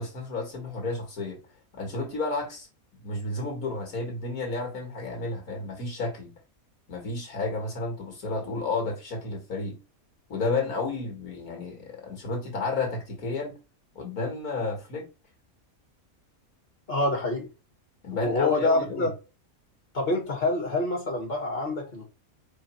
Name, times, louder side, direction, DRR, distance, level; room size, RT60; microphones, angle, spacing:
voice 1, 0.0-1.4 1.7-2.7 3.0-6.3 6.9-9.8 10.3-13.6 14.0-15.1 18.0-19.1, left 3 dB, 85° left, 2.4 m, -32 dB
voice 2, 16.9-17.5 18.1-19.1 19.9-22.1, left 2 dB, 40° left, 2.7 m, -26 dB
5.2 x 5.0 x 4.6 m
omnidirectional pair, 1.5 m